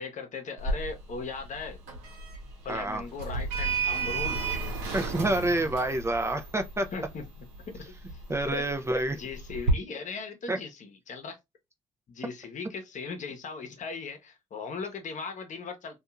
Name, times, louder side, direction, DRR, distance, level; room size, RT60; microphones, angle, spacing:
voice 1, 0.0-1.8 2.6-4.4 6.9-8.6 9.2-11.4 12.1-16.0, left 4 dB, 50° left, 0.9 m, -38 dB
Sliding door, 0.6-9.7, right 3 dB, 80° right, 0.9 m, -34 dB
voice 2, 2.7-3.0 4.9-6.9 8.3-9.2 10.5-10.6, right 2 dB, 15° right, 0.4 m, -28 dB
2.7 x 2.4 x 2.3 m
hypercardioid pair, 55°, 16 cm